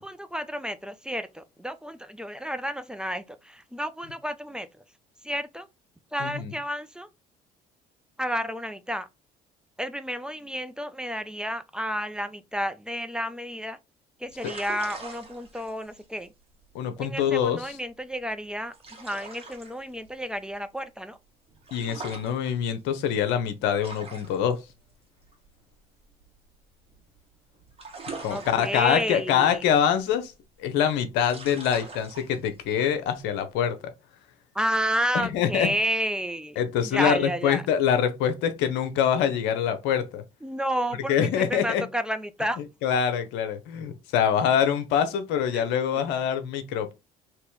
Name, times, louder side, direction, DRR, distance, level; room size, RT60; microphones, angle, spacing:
voice 1, 0.0-4.7 5.2-5.7 6.1-7.1 8.2-9.1 9.8-13.8 14.2-16.3 17.0-18.7 19.0-21.2 28.3-29.6 34.5-37.6 40.4-42.6 45.5-45.6 45.9-46.1, equal, 5° right, 0.5 m, -31 dB
voice 2, 6.2-6.5 16.7-17.6 21.7-24.6 28.2-30.3 30.6-33.8 35.1-35.7 36.6-40.2 41.1-41.9 42.8-46.9, left 8 dB, 70° left, 0.8 m, -25 dB
sound 1, 14.3-27.2 27.4-33.6, right 3 dB, 30° right, 1.6 m, -44 dB
3.0 x 3.0 x 3.7 m
hypercardioid pair, 65°, 19 cm